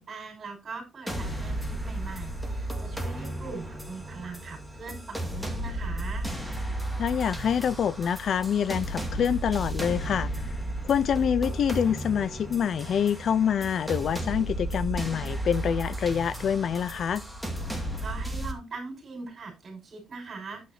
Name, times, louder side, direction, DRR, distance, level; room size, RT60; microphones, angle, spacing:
voice 1, 0.0-6.3 18.0-20.7, right 4 dB, 35° right, 5.0 m, -41 dB
sound 1, 1.1-18.5, right 1 dB, ahead, 2.1 m, -34 dB
voice 2, 7.0-10.3 10.8-17.2, left 8 dB, 45° left, 0.5 m, -26 dB
11.0 x 9.3 x 2.7 m
cardioid pair, 145°, 0 cm